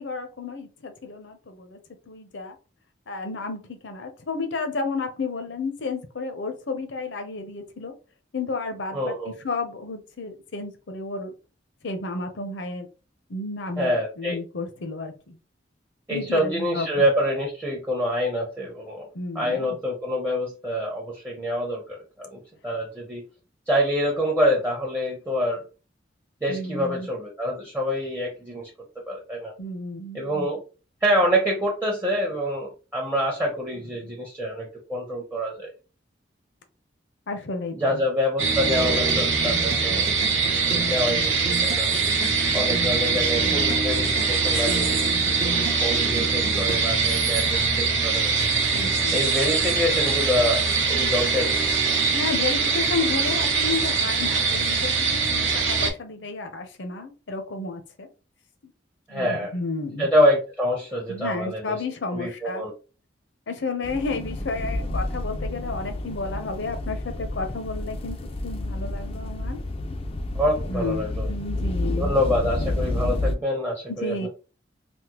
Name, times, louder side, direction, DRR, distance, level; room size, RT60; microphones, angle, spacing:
voice 1, 0.0-1.8 2.1-2.6 3.1-7.9 8.3-11.3 11.8-12.9 13.3-15.4 16.1-17.0 19.1-19.8 26.5-27.1 29.6-30.5 37.3-38.0 39.9-40.1 48.7-49.2 52.1-54.9 55.3-58.1 59.1-60.1 61.1-62.7 63.5-68.2 68.4-69.6 70.7-72.1 73.9-74.3, left 3 dB, 75° left, 0.7 m, -32 dB
voice 2, 8.9-9.3 13.8-14.4 16.1-19.1 19.3-23.2 23.7-25.6 26.4-28.7 29.1-29.5 30.1-30.6 31.0-35.7 37.7-40.1 40.7-41.9 42.5-45.0 45.2-48.3 49.1-51.6 59.1-59.5 60.0-61.8 62.1-62.7 70.4-71.3 71.9-74.3, equal, 10° right, 0.6 m, -26 dB
sound 1, 38.4-55.9, right 4 dB, 90° right, 0.8 m, -23 dB
sound 2, 38.7-46.7, right 3 dB, 55° right, 0.7 m, -35 dB
sound 3, 63.8-73.3, left 1 dB, 30° left, 0.3 m, -30 dB
3.5 x 2.1 x 2.9 m
head